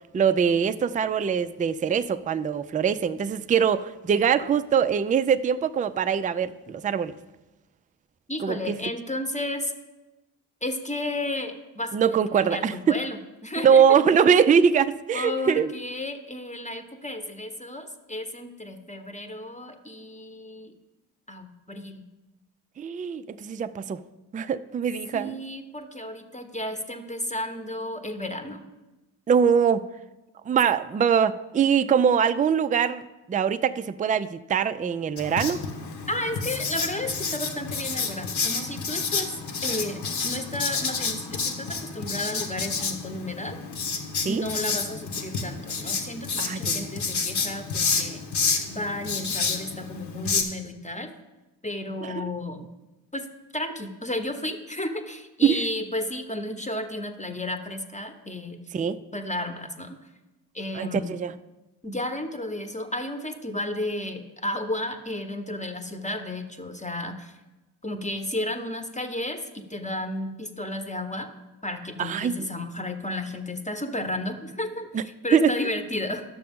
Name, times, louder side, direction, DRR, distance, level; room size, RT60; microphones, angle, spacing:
voice 1, 0.1-7.2 8.4-8.8 11.9-12.7 13.6-15.7 22.8-24.0 24.3-25.4 29.3-29.9 30.5-35.6 44.2-44.4 46.4-46.9 52.0-52.3 55.4-55.6 58.7-59.0 60.7-61.3 72.0-72.5 74.9-75.0 75.3-75.5, right 7 dB, 20° right, 13 dB, 0.3 m, -23 dB
voice 2, 8.3-9.7 10.6-14.0 15.1-20.7 21.3-22.0 25.1-28.6 36.1-43.6 44.3-48.2 48.7-51.1 51.6-52.7 53.1-53.2 53.5-58.6 59.1-60.0 60.5-61.1 61.8-67.3 67.8-69.4 69.7-71.3 71.6-76.2, left 1 dB, 15° left, 7 dB, 1.0 m, -33 dB
Writing, 35.2-50.4, left 5 dB, 55° left, 1.3 m, -29 dB
10.5 x 6.6 x 3.6 m, 1.1 s
hypercardioid pair, 40°, 47 cm